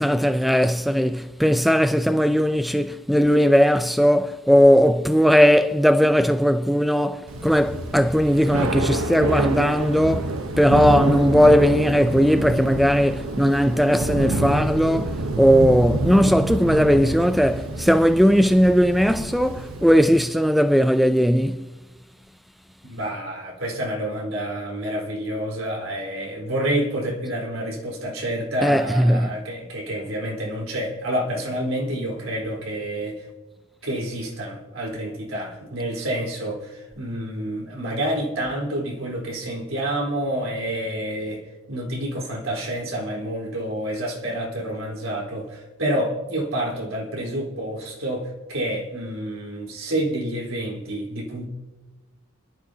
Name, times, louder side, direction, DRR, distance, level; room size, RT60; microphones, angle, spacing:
voice 1, 0.0-21.7 28.6-29.4, equal, ahead, 0.3 m, -18 dB
Thunder / Rain, 7.3-20.2, right 2 dB, 90° right, 1.0 m, -27 dB
voice 2, 22.8-33.2 33.8-41.4 41.7-51.5, right 1 dB, 70° right, 4.2 m, -28 dB
30.0 x 11.5 x 2.8 m
head